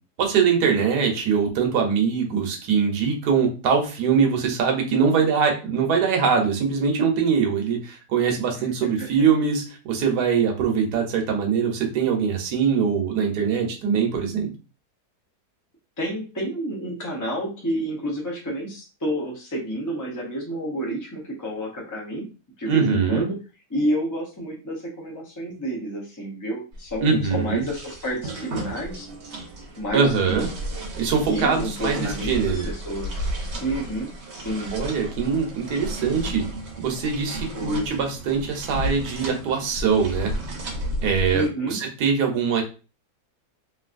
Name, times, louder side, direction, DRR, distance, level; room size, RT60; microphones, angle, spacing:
voice 1, 0.2-14.5 22.7-23.3 27.0-27.7 29.9-30.5 31.0-32.6 34.7-36.4 36.8-40.3 41.0-42.6, right 6 dB, 75° right, 2 dB, 1.3 m, -22 dB
voice 2, 8.5-9.1 16.0-22.3 22.6-23.4 23.7-29.1 29.8-30.4 31.3-33.2 33.6-34.8 37.5-37.8 41.3-41.8, right 1 dB, 25° left, -3 dB, 0.4 m, -29 dB
sound 1, 26.7-41.5, right 1 dB, 50° right, 0.9 m, -33 dB
3.1 x 2.6 x 2.5 m, 0.33 s
omnidirectional pair, 1.7 m